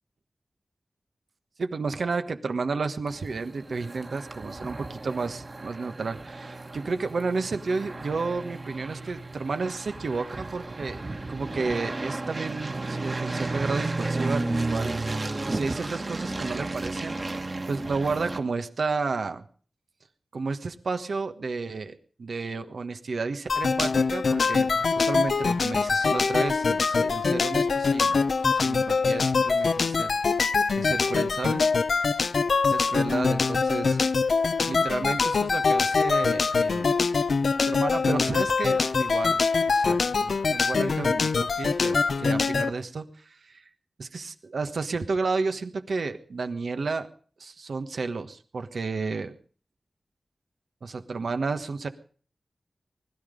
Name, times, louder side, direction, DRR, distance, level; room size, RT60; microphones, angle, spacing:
voice 1, 1.6-11.0 11.3-15.0 15.5-17.2 17.7-19.5 20.3-30.1 30.8-31.6 32.7-34.0 34.7-36.9 37.7-43.6 44.0-47.1 47.4-49.3 50.8-51.9, right 4 dB, 85° right, 9 dB, 1.4 m, -32 dB
sound 1, 3.1-18.4, right 2 dB, 45° right, 1.8 m, -33 dB
sound 2, 23.5-42.7, left 4 dB, 85° left, 0.7 m, -24 dB
20.5 x 12.0 x 5.2 m, 0.43 s
wide cardioid pair, 75°, 0 cm